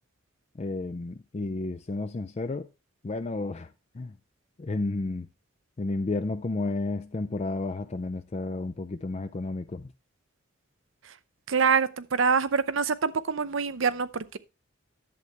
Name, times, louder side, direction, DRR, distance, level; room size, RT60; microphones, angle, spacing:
voice 1, 0.6-2.7 3.0-3.7 3.9-4.1 4.6-5.3 5.8-9.9, left 2 dB, 30° left, 0.4 m, -32 dB
voice 2, 11.5-14.4, right 5 dB, 70° right, 0.6 m, -25 dB
11.0 x 7.8 x 3.3 m
head